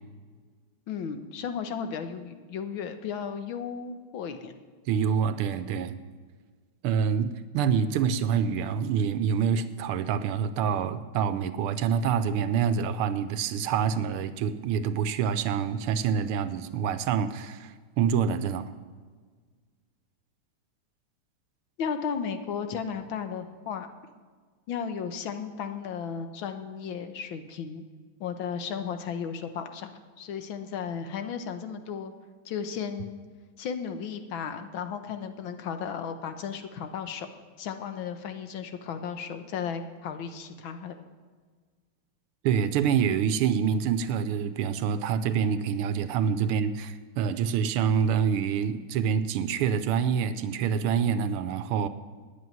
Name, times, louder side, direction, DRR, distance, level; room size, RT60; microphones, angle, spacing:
voice 1, 0.9-4.6 21.8-23.9 24.7-27.8 28.2-32.1 32.4-33.2 33.6-37.3 37.6-41.0, left 7 dB, 70° left, 8 dB, 1.6 m, -34 dB
voice 2, 4.9-5.9 6.8-18.7 42.4-51.9, right 7 dB, 80° right, 12 dB, 1.6 m, -26 dB
9.4 x 8.5 x 9.3 m, 1.5 s
omnidirectional pair, 2.4 m